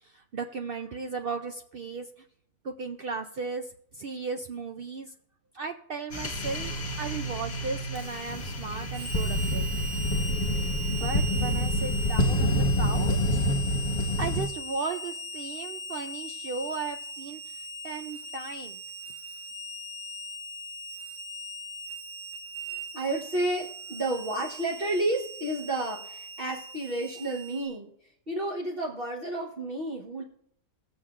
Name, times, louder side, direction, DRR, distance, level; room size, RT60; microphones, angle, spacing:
voice 1, 0.0-2.2 2.6-5.1 5.5-6.7 7.0-9.7 10.9-13.5 14.2-18.8, right 4 dB, 85° right, 5 dB, 0.5 m, -36 dB
sound 1, 6.1-14.5, equal, 30° left, 1.2 m, -28 dB
Harmonica, 8.9-27.7, equal, 70° right, 2.8 m, -39 dB
voice 2, 22.7-27.9 28.3-30.2, right 1 dB, 40° right, -4 dB, 1.3 m, -31 dB
21.0 x 7.2 x 2.5 m, 0.69 s
omnidirectional pair, 1.6 m